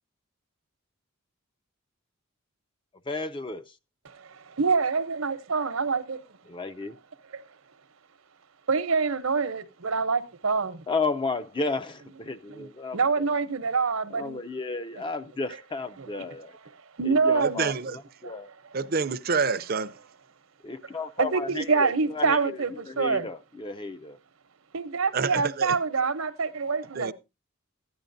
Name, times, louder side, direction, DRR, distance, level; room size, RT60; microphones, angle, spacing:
voice 1, 3.1-3.8 6.5-7.0 10.9-13.3 14.1-16.6 17.0-18.5 20.6-24.2, left 3 dB, 20° left, 0.4 m, -33 dB
voice 2, 4.0-6.2 7.3-7.4 8.7-10.8 12.5-12.7 12.9-14.4 16.0-16.2 17.0-17.7 18.2-18.3 21.2-23.3 24.7-27.1, right 4 dB, 75° right, 0.8 m, -26 dB
voice 3, 17.4-18.0 18.7-19.9 25.1-25.8 26.9-27.1, right 5 dB, 45° right, 0.5 m, -27 dB
14.5 x 10.5 x 2.6 m
head